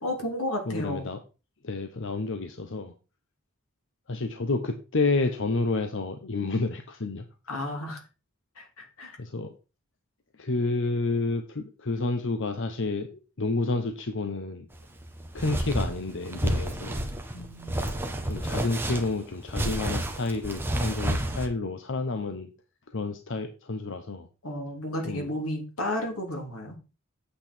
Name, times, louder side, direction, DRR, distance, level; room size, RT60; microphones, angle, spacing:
voice 1, 0.0-1.1 7.5-8.0 8.5-9.2 17.3-17.9 24.4-26.8, left 1 dB, 90° left, 2 dB, 3.2 m, -33 dB
voice 2, 0.7-1.2 1.6-2.9 4.1-7.2 9.2-9.5 10.4-14.7 15.3-17.1 18.2-22.5 22.9-24.3 25.0-25.3, left 3 dB, 60° left, 7 dB, 0.9 m, -30 dB
sound 1, 14.7-21.5, right 1 dB, 10° right, 1.2 m, -30 dB
8.6 x 7.7 x 4.4 m, 0.32 s
head